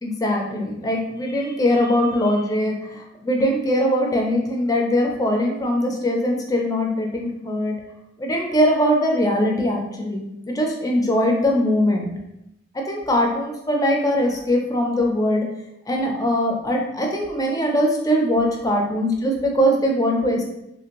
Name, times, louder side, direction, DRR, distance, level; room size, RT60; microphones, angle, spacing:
voice 1, 0.0-7.7 8.2-12.1 12.7-15.4 15.9-20.4, equal, 20° left, 1 dB, 0.5 m, -21 dB
3.1 x 2.5 x 2.9 m, 0.85 s
head